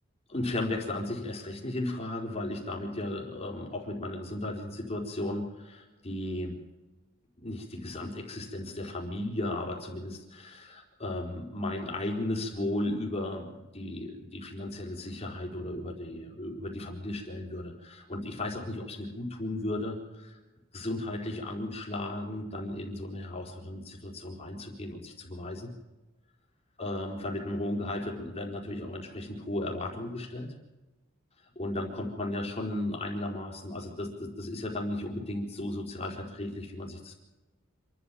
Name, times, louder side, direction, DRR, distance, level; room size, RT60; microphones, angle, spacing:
voice 1, 0.3-6.6 7.4-20.4 20.7-25.7 26.8-30.5 31.6-37.2, left 1 dB, 30° left, 0 dB, 4.2 m, -35 dB
27.5 x 12.5 x 7.5 m, 1.1 s
head